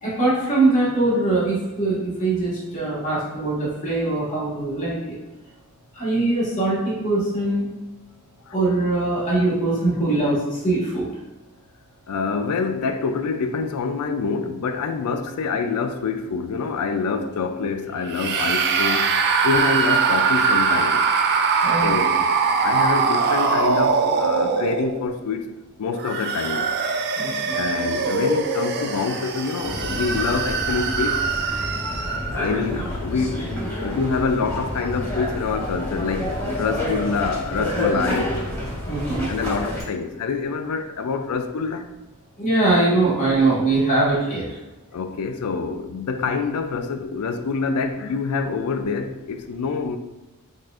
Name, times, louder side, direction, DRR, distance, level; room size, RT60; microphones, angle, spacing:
voice 1, 0.0-5.2 5.9-7.7 8.5-10.4 10.6-11.1 21.6-21.9 27.2-27.6 33.8-34.0 38.9-39.3 42.4-44.5, right 2 dB, 35° left, 1.4 m, -22 dB
voice 2, 12.1-21.1 21.8-22.3 22.6-25.5 25.8-26.7 27.5-31.3 32.3-38.3 39.3-41.9 44.9-50.0, left 4 dB, 85° left, 0.4 m, -26 dB
sound 1, 18.1-25.2 25.9-32.4, right 5 dB, 45° right, 0.3 m, -22 dB
sound 2, 29.6-39.8, left 1 dB, 15° left, 1.4 m, -28 dB
6.0 x 2.4 x 2.4 m
head